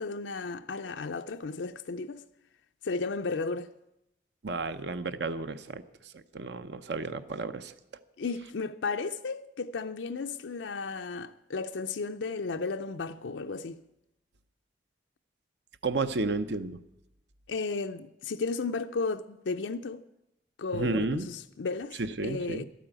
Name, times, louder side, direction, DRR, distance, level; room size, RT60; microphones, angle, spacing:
voice 1, 0.0-2.2 2.8-3.7 8.2-13.8 17.5-20.0 20.6-22.6, left 4 dB, 90° left, 0.5 m, -34 dB
voice 2, 4.4-7.7 15.8-16.8 20.7-21.3 22.0-22.6, right 3 dB, 70° right, 0.7 m, -32 dB
12.0 x 9.3 x 8.9 m
head